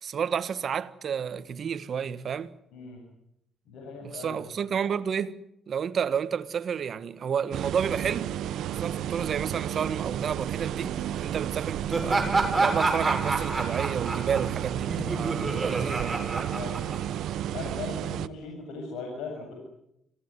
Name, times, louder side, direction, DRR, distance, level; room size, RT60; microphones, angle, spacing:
voice 1, 0.0-2.5 4.0-5.4 5.7-8.3 8.8-12.3 12.6-16.5, right 7 dB, 55° right, 1.5 m, -31 dB
voice 2, 2.7-3.0 3.7-4.4 16.5-16.9 17.5-19.6, left 4 dB, 90° left, 7.6 m, -38 dB
sound 1, 7.5-18.3, right 11 dB, 80° right, 1.0 m, -32 dB
Laughter, 11.9-17.3, right 3 dB, 20° right, 6.9 m, -28 dB
27.5 x 17.5 x 9.9 m
cardioid pair, 90°, 0 cm